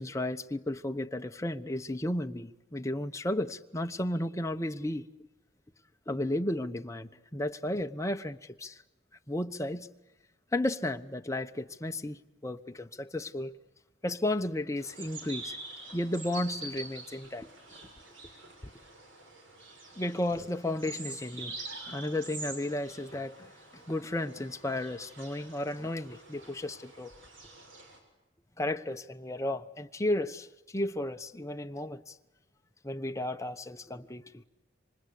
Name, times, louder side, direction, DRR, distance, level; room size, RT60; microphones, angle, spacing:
voice 1, 0.0-5.1 6.1-8.8 9.3-9.9 10.5-13.5 14.0-15.6 15.9-17.5 20.0-23.4 23.7-27.1 28.6-30.5 30.7-32.1 32.8-34.5, left 1 dB, 15° left, 1.0 m, -33 dB
Robin chirping, 14.8-28.0, right 3 dB, 80° right, 6.5 m, -46 dB
27.5 x 25.0 x 8.5 m
head